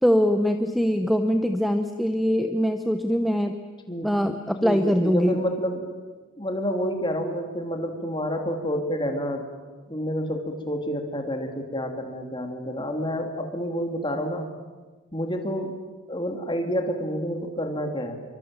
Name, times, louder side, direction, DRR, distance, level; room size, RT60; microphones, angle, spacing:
voice 1, 0.0-3.6 4.0-5.4, equal, ahead, 8 dB, 0.9 m, -22 dB
voice 2, 4.6-5.9 6.4-9.4 9.9-14.5 15.1-15.8 16.1-18.2, equal, 20° left, 4 dB, 2.9 m, -29 dB
27.5 x 24.0 x 9.0 m, 1.3 s
head